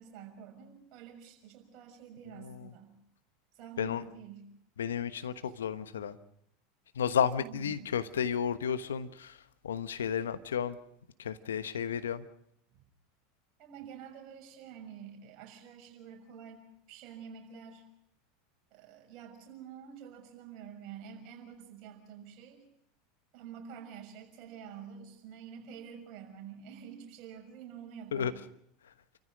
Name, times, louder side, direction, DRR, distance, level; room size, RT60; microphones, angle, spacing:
voice 1, 0.0-2.9 3.5-4.5 5.4-5.5 7.3-7.9 12.7-12.8 13.6-16.6 16.9-17.8 18.7-22.6 23.3-28.4, right 7 dB, 50° right, 2 dB, 6.4 m, -48 dB
voice 2, 4.8-6.2 7.0-9.4 9.6-10.8 11.2-12.2 28.1-28.3, left 8 dB, 80° left, 12 dB, 1.2 m, -32 dB
29.0 x 14.5 x 6.4 m, 0.73 s
hypercardioid pair, 85°, 0 cm